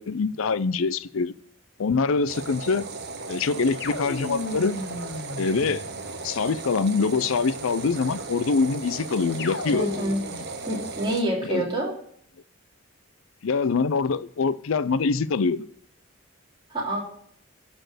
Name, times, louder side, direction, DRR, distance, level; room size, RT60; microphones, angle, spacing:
voice 1, 0.0-1.3 1.8-2.9 3.3-4.8 5.4-5.8 6.2-9.9 10.3-10.4 11.4-11.7 13.4-15.7, left 4 dB, 75° left, 0.5 m, -24 dB
sound 1, 2.3-11.2, right 3 dB, 50° right, 1.1 m, -36 dB
sound 2, 3.8-6.3 9.4-10.4, left 2 dB, 55° left, 0.9 m, -35 dB
voice 2, 9.7-10.2 10.7-11.9 16.7-17.0, right 1 dB, 20° right, 3.1 m, -27 dB
11.5 x 4.4 x 7.7 m
head